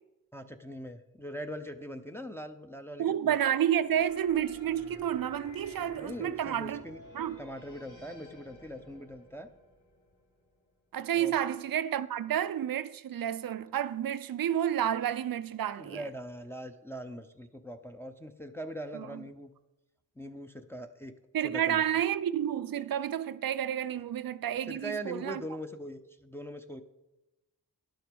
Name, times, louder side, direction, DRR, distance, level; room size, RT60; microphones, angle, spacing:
voice 1, 0.3-3.3 5.9-7.0 7.4-9.5 11.1-11.4 15.8-19.5 20.2-21.1 21.4-21.8 24.7-26.8, equal, 5° left, 0.6 m, -41 dB
voice 2, 3.0-6.8 7.1-7.4 10.9-16.0 18.9-19.2 21.3-25.4, right 10 dB, 60° right, 0.5 m, -30 dB
sound 1, 3.9-10.7, left 1 dB, 50° left, 2.1 m, -52 dB
11.0 x 7.7 x 5.2 m
cardioid pair, 80°, 39 cm